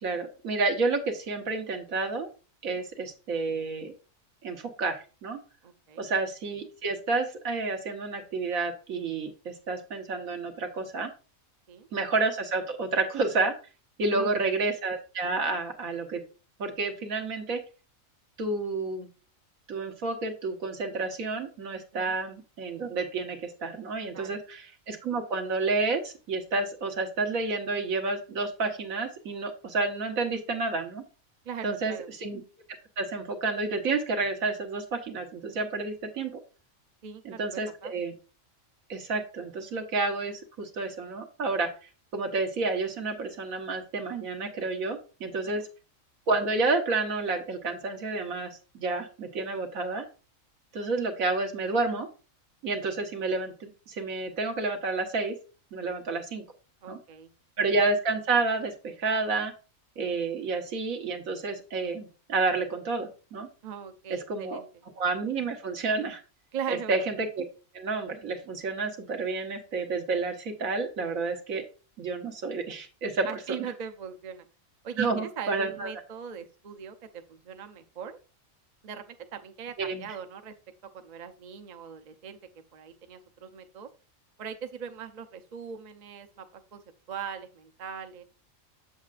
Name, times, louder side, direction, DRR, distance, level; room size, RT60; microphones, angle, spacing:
voice 1, 0.0-2.3 2.6-3.9 4.4-5.4 6.0-11.1 11.9-13.5 14.0-16.2 16.6-17.6 18.4-19.1 19.7-31.0 31.6-32.4 33.0-36.3 37.2-38.1 38.9-41.7 42.1-45.6 46.3-50.0 50.7-52.1 52.6-55.3 55.7-56.4 56.9-57.0 57.6-59.5 60.0-63.5 64.1-64.6 65.0-66.2 66.7-67.5 67.7-71.6 72.0-73.3 73.6-73.7 75.0-75.9 79.8-80.1, right 3 dB, 80° right, 4 dB, 1.6 m, -30 dB
voice 2, 5.6-6.1 11.7-11.9 14.1-14.6 21.9-22.2 24.1-24.4 31.4-32.1 37.0-37.9 45.5-45.7 56.8-57.3 63.6-64.7 66.5-66.9 73.2-74.5 74.8-78.2 78.8-80.5 81.0-82.4 82.7-83.9 84.4-86.8 87.1-88.2, right 7 dB, 45° right, 7 dB, 0.6 m, -40 dB
7.5 x 7.2 x 2.5 m, 0.35 s
omnidirectional pair, 1.4 m